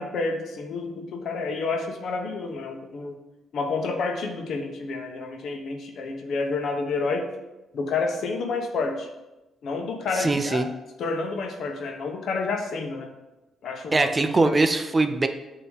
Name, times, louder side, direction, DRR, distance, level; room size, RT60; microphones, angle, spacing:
voice 1, 0.0-3.2 3.5-7.3 7.7-9.1 9.6-10.6 11.0-13.1 13.6-14.1, left 4 dB, 65° left, 4 dB, 1.0 m, -29 dB
voice 2, 10.1-10.7 13.9-15.3, right 3 dB, 25° right, 8 dB, 0.5 m, -22 dB
8.2 x 3.0 x 5.0 m, 1.0 s
cardioid pair, 90°, 0 cm